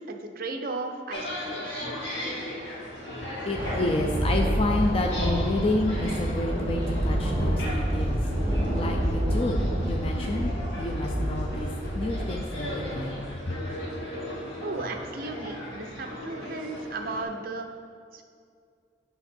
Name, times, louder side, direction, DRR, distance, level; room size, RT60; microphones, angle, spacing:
voice 1, 0.0-1.9 14.6-17.7 18.1-18.2, right 3 dB, 50° right, 4 dB, 0.6 m, -35 dB
sound 1, 1.1-17.2, left 1 dB, 70° left, 1.9 m, -37 dB
Thunder, 3.0-13.7, equal, 30° right, 1.7 m, -28 dB
voice 2, 3.5-11.7 12.0-13.5, left 2 dB, 30° left, 2 dB, 0.4 m, -30 dB
8.0 x 6.0 x 4.3 m, 2.3 s
head